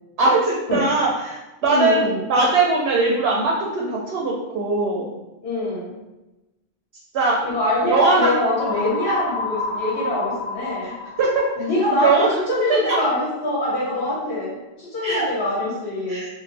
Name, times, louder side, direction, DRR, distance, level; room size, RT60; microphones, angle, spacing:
voice 1, 0.2-5.1 7.1-7.4 7.9-8.3 10.8-10.9 11.2-11.4 12.0-13.0 15.0-15.3 16.1-16.3, right 3 dB, 80° right, -3 dB, 0.8 m, -20 dB
voice 2, 1.7-2.2 5.4-5.9 7.4-10.9 11.6-16.2, left 1 dB, 70° left, -7 dB, 1.3 m, -24 dB
sound 1, 8.6-12.5, left 3 dB, 85° left, 0.9 m, -30 dB
2.5 x 2.4 x 3.2 m, 1.0 s
omnidirectional pair, 1.1 m